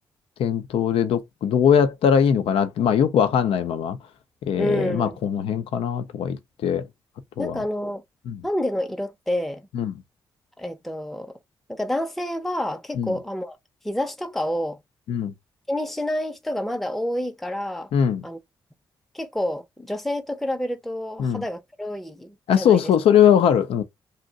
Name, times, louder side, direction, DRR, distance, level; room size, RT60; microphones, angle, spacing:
voice 1, 0.4-4.0 4.5-6.8 7.4-7.6 8.3-8.4 9.7-9.9 13.0-13.1 15.1-15.3 17.9-18.2 21.2-21.4 22.5-23.8, left 8 dB, 75° left, 0.4 m, -20 dB
voice 2, 4.6-5.2 7.4-8.0 8.4-9.6 10.6-11.4 11.7-13.6 13.8-14.8 15.7-17.9 18.2-18.4 19.1-22.9, left 1 dB, ahead, 0.6 m, -28 dB
2.6 x 2.1 x 3.8 m
hypercardioid pair, 40°, 10 cm